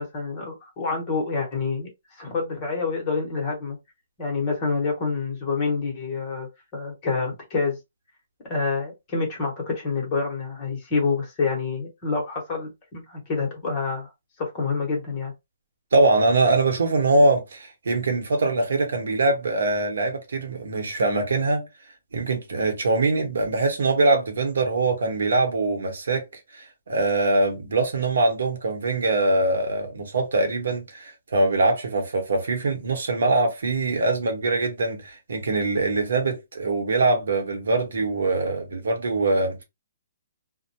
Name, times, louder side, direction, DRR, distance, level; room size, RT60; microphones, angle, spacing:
voice 1, 0.0-3.8 4.2-7.8 8.4-14.1 14.4-15.3, left 4 dB, 20° left, 0.9 m, -27 dB
voice 2, 15.9-21.7 22.1-26.2 26.5-39.6, right 2 dB, 85° right, 0.9 m, -23 dB
2.2 x 2.1 x 2.7 m
hypercardioid pair, 175°, 0 cm